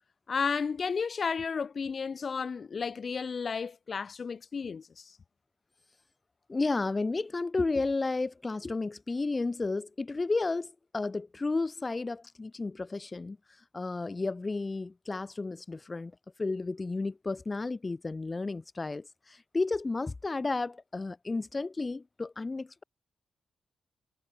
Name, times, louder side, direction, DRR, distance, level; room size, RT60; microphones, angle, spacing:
voice 1, 0.3-5.0, left 5 dB, 35° left, 0.8 m, -33 dB
voice 2, 6.5-13.4 13.7-16.1 16.4-22.8, left 3 dB, 20° left, 0.3 m, -32 dB
wide cardioid pair, 165°, 0 cm